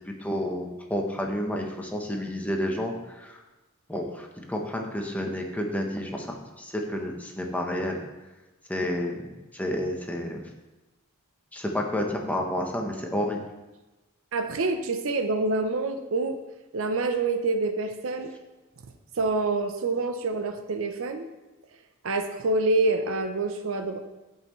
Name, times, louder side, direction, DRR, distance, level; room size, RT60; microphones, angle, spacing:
voice 1, 0.2-3.4 3.9-8.0 8.7-10.4 11.5-13.4, left 1 dB, 5° left, 1 dB, 1.0 m, -30 dB
voice 2, 14.3-16.4 16.7-18.3 19.2-21.3 22.0-24.0, right 3 dB, 65° right, 7 dB, 0.6 m, -26 dB
13.0 x 5.6 x 3.1 m, 1.1 s
head